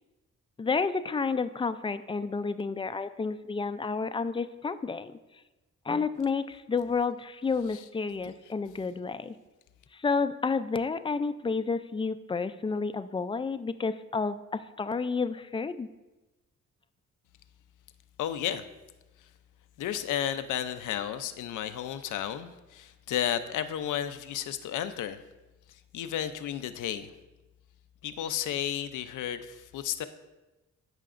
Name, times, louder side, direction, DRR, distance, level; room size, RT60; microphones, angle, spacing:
voice 1, 0.6-5.2 5.9-9.3 9.9-15.9, left 4 dB, 20° left, 12 dB, 0.3 m, -30 dB
voice 2, 18.2-18.7 19.8-25.2 25.9-27.1 28.0-30.0, left 10 dB, 90° left, 11 dB, 0.5 m, -32 dB
13.5 x 5.8 x 2.5 m, 1.1 s
cardioid pair, 85°, 30 cm